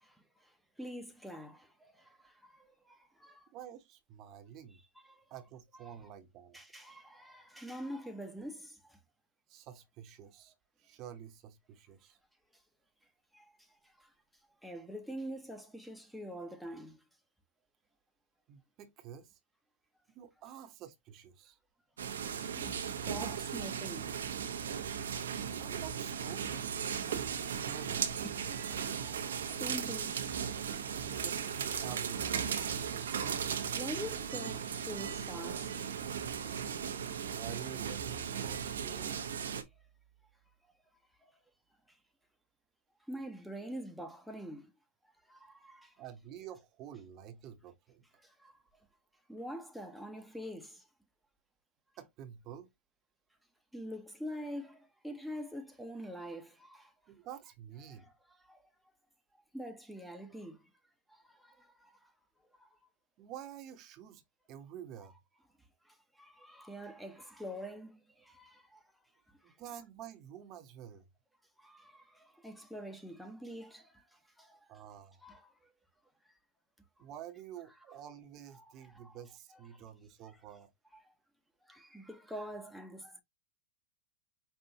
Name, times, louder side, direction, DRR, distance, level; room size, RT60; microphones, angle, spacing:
voice 1, 0.0-3.5 5.1-5.2 5.9-6.0 6.5-9.0 13.3-13.5 13.8-14.1 14.6-17.0 22.4-24.2 28.2-28.6 29.0-30.2 33.0-33.4 33.7-35.7 36.6-36.8 41.9-42.0 43.1-44.7 45.3-46.0 48.2-48.6 49.3-50.9 53.7-56.9 57.8-58.6 59.5-60.6 61.1-62.1 62.6-62.7 65.9-68.8 69.4-69.5 71.6-74.7 75.2-75.7 78.6-79.2 79.5-79.9 80.9-81.1 81.7-83.2, equal, ahead, 0.8 m, -46 dB
voice 2, 3.5-4.8 5.3-6.6 9.5-12.2 18.5-19.4 20.1-21.6 25.6-26.8 27.1-28.2 31.1-32.5 37.3-39.2 46.0-48.0 52.0-52.7 57.1-58.1 63.2-64.2 64.5-65.1 69.4-71.0 74.7-75.2 77.0-80.7, right 9 dB, 40° right, 0.9 m, -49 dB
sound 1, 22.0-39.6, right 7 dB, 85° right, 0.8 m, -37 dB
5.6 x 2.5 x 2.8 m
hypercardioid pair, 115°, 0 cm